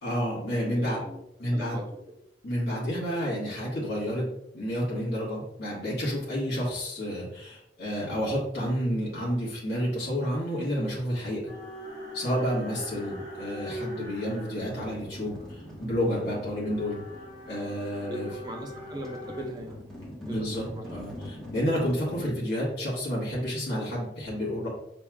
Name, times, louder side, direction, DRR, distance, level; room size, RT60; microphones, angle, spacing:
voice 1, 0.0-1.0 1.4-1.8 2.4-11.4 12.1-17.0 17.4-18.3 20.2-24.7, equal, 60° left, -7 dB, 1.5 m, -30 dB
voice 2, 0.7-1.9 11.6-11.7 12.9-13.1 18.1-19.8 20.3-21.0, equal, 25° right, 2 dB, 0.6 m, -40 dB
sound 1, 11.5-19.5, left 1 dB, 20° left, 1.3 m, -42 dB
sound 2, 14.5-22.2, left 1 dB, 5° left, 1.0 m, -45 dB
5.8 x 3.4 x 2.3 m, 0.80 s
head